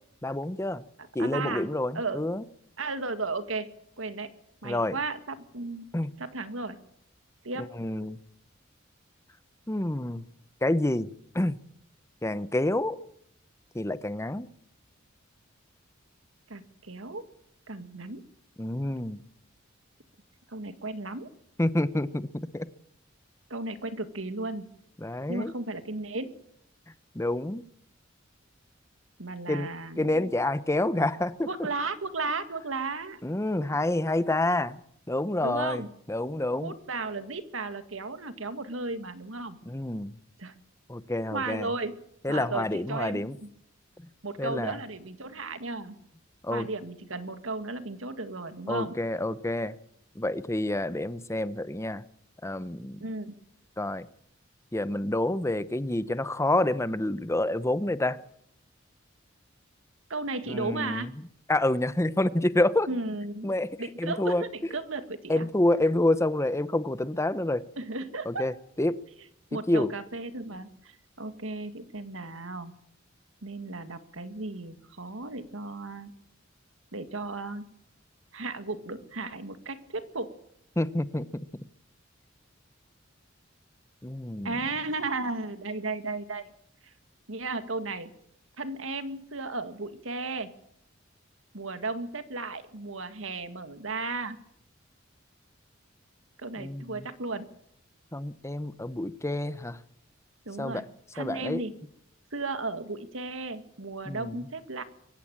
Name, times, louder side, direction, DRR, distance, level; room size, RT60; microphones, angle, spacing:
voice 1, 0.2-0.8 1.1-2.4 4.6-5.0 5.9-6.1 7.8-8.2 9.7-10.3 10.6-11.1 11.3-11.6 12.2-13.0 13.7-14.5 18.6-19.2 21.6-22.3 22.5-22.7 25.0-25.5 27.1-27.6 29.5-29.7 30.0-31.5 33.2-34.8 35.1-35.8 36.1-36.7 39.7-40.1 40.9-41.7 42.2-43.4 44.4-44.8 46.4-46.7 48.7-49.8 50.2-52.0 52.4-53.0 53.8-54.1 54.7-58.2 60.5-61.1 61.5-62.9 63.4-63.7 64.0-64.4 65.3-67.6 68.3-69.0 69.7-69.9 80.8-81.3 84.0-84.6 96.6-97.1 98.1-99.8 100.6-100.8 101.2-101.6 104.1-104.4, left 1 dB, 15° left, 15 dB, 0.8 m, -28 dB
voice 2, 1.0-1.7 1.9-2.3 2.8-3.7 4.0-4.3 4.6-5.9 6.2-6.8 7.4-7.7 16.5-17.2 17.7-18.3 20.5-21.3 23.5-24.7 25.3-26.4 29.2-30.3 31.5-33.2 35.4-35.9 36.6-39.6 40.4-40.5 41.2-42.0 42.3-43.5 44.2-46.0 46.5-49.0 53.0-53.4 60.1-61.1 62.9-63.5 63.8-65.4 67.8-68.5 69.5-72.7 73.4-76.1 76.9-77.7 78.3-80.3 84.4-86.5 87.3-88.1 88.6-90.5 91.5-94.4 96.4-97.5 100.5-100.8 101.1-101.7 102.3-104.8, right 3 dB, 80° right, 10 dB, 2.0 m, -35 dB
23.5 x 16.0 x 8.8 m, 0.72 s
head